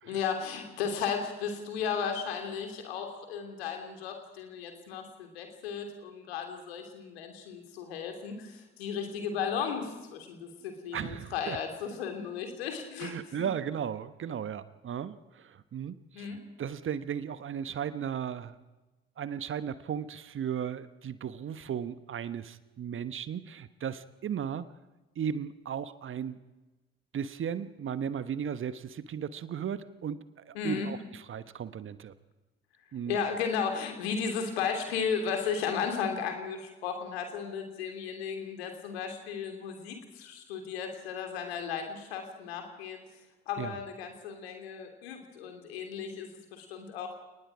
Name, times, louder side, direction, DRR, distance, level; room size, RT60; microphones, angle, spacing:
voice 1, 0.0-13.1 13.4-13.5 16.1-16.4 30.5-30.9 33.1-43.0 43.5-47.2, left 6 dB, 75° left, 4 dB, 3.3 m, -35 dB
voice 2, 10.9-11.6 13.0-18.6 19.2-24.7 25.1-26.4 27.1-32.1 32.9-33.2 43.6-43.8, right 8 dB, 40° right, 14 dB, 1.2 m, -36 dB
30.0 x 19.5 x 5.0 m, 1.1 s
figure-of-eight pair, 50°, 32 cm